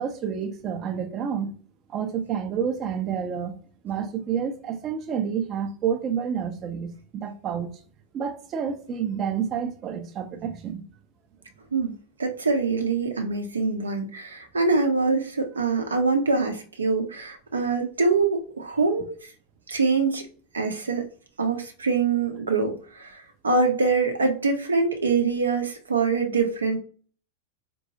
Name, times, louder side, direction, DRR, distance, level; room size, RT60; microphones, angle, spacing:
voice 1, 0.0-1.5 1.9-3.6 3.8-7.7 8.1-10.8, right 7 dB, 30° right, 0.5 m, -29 dB
voice 2, 12.2-19.3 19.7-20.2 20.5-21.1 21.4-26.8, right 4 dB, 75° right, 0.7 m, -24 dB
4.0 x 2.2 x 2.7 m
figure-of-eight pair, 90°, 0 cm